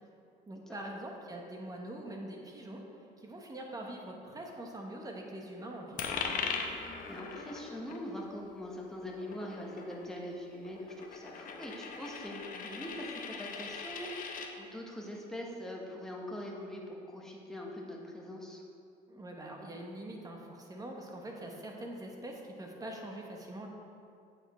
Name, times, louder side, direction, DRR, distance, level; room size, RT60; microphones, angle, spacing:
voice 1, 0.5-2.8 3.2-6.1 19.1-23.7, right 1 dB, 20° right, 0 dB, 1.2 m, -43 dB
Coin (dropping), 6.0-14.5, left 5 dB, 55° left, 0.8 m, -40 dB
voice 2, 7.1-18.6, left 1 dB, 5° left, -2 dB, 1.3 m, -43 dB
8.2 x 5.9 x 4.4 m, 2.5 s
cardioid pair, 110°, 17 cm